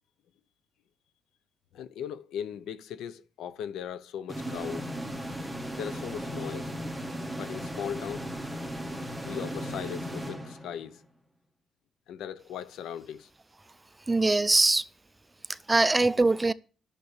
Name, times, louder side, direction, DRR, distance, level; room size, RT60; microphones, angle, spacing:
voice 1, 1.7-5.0 5.8-6.7 7.4-8.3 9.2-11.0 12.1-13.3, left 9 dB, 80° left, 0.7 m, -38 dB
sound 1, 4.3-11.0, equal, ahead, 1.6 m, -36 dB
voice 2, 14.1-14.9 15.5-16.5, right 2 dB, 15° right, 0.5 m, -22 dB
10.5 x 6.7 x 6.5 m
cardioid pair, 90°, 0 cm